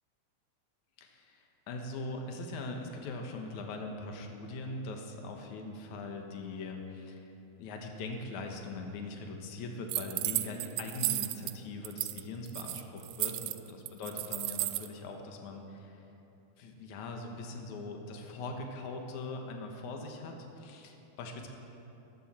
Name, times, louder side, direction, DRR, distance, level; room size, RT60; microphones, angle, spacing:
voice 1, 1.0-7.3 7.6-16.0 16.6-21.5, left 2 dB, 70° left, 2 dB, 2.6 m, -41 dB
sound 1, 9.9-11.5 11.8-12.2 12.5-14.9, right 18 dB, 85° right, 2.0 m, -33 dB
19.5 x 14.5 x 4.3 m, 2.9 s
omnidirectional pair, 3.6 m